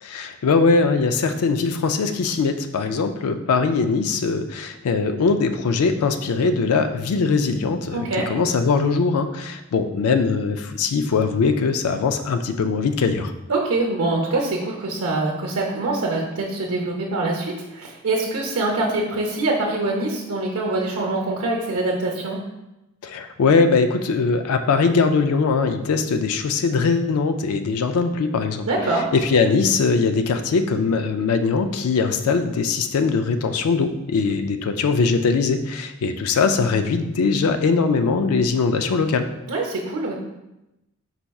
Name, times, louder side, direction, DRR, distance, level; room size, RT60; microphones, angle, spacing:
voice 1, 0.0-13.3 23.0-28.6 29.1-39.3, left 4 dB, 75° left, 8 dB, 0.4 m, -21 dB
voice 2, 7.9-8.3 13.5-22.4 28.6-29.1 39.5-40.1, right 2 dB, 85° right, -2 dB, 0.7 m, -24 dB
4.5 x 4.1 x 2.3 m, 0.94 s
head